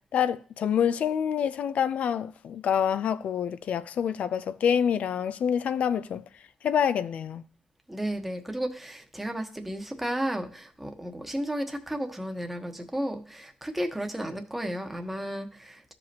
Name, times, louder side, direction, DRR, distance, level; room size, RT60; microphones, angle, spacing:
voice 1, 0.1-6.2 6.6-7.4, left 8 dB, 85° left, 0.5 m, -27 dB
voice 2, 7.9-15.9, right 1 dB, 5° right, 1.1 m, -33 dB
14.0 x 5.2 x 2.9 m
wide cardioid pair, 135°, 2 cm